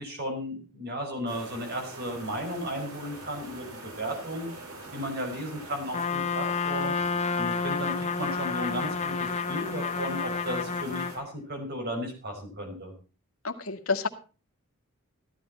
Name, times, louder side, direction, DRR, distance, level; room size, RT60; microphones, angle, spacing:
voice 1, 0.0-4.5 4.9-7.0 7.4-12.9, equal, 45° right, 3 dB, 5.6 m, -35 dB
sound 1, 1.3-11.2, right 2 dB, 85° right, 6.7 m, -44 dB
Trumpet, 5.9-11.2, left 5 dB, 30° left, 0.7 m, -30 dB
voice 2, 13.4-14.1, left 4 dB, 70° left, 6 dB, 1.8 m, -29 dB
15.0 x 12.5 x 4.2 m, 0.36 s
head